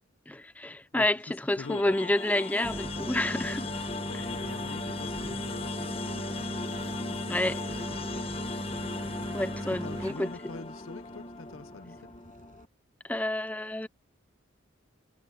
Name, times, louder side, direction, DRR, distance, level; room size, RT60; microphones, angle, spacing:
voice 1, 0.3-3.7 7.3-7.6 9.3-10.5 13.0-13.9, left 1 dB, 10° left, 0.4 m, -29 dB
voice 2, 1.6-1.9 4.1-6.6 7.9-8.3 9.7-12.1, left 4 dB, 90° left, 0.7 m, -45 dB
sound 1, 1.6-12.7, left 3 dB, 30° left, 1.1 m, -38 dB
sound 2, 2.6-10.1, equal, 20° right, 1.3 m, -38 dB
sound 3, 5.1-12.7, right 1 dB, 45° right, 5.7 m, -59 dB
head